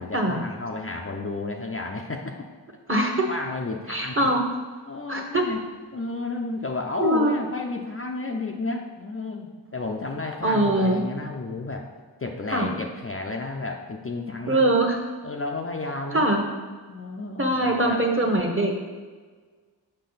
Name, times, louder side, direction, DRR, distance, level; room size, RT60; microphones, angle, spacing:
voice 1, 0.0-2.4 3.3-4.2 4.9-5.6 5.9-11.9 12.2-14.8 15.2-16.3 16.9-18.0, left 3 dB, 30° left, 1 dB, 0.6 m, -32 dB
voice 2, 2.9-3.3 3.9-4.4 5.1-5.5 7.0-7.3 10.4-11.0 12.5-12.7 14.5-15.0 16.1-16.5 17.4-18.7, right 1 dB, 25° right, 2 dB, 1.2 m, -22 dB
6.6 x 4.9 x 4.0 m, 1.5 s
cardioid pair, 50°, 46 cm